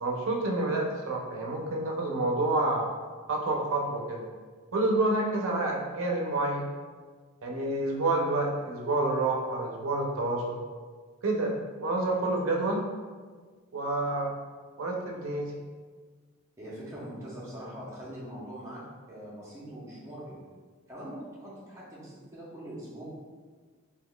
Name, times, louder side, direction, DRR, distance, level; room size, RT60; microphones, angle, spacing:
voice 1, 0.0-2.9 3.3-4.3 4.7-6.7 7.4-10.6 11.2-12.8 13.7-14.3 14.8-15.5, right 2 dB, 75° right, -1 dB, 0.5 m, -28 dB
voice 2, 16.6-18.8 19.1-20.3 20.9-23.0, right 1 dB, 15° right, -8 dB, 0.7 m, -42 dB
3.6 x 2.8 x 2.3 m, 1.5 s
head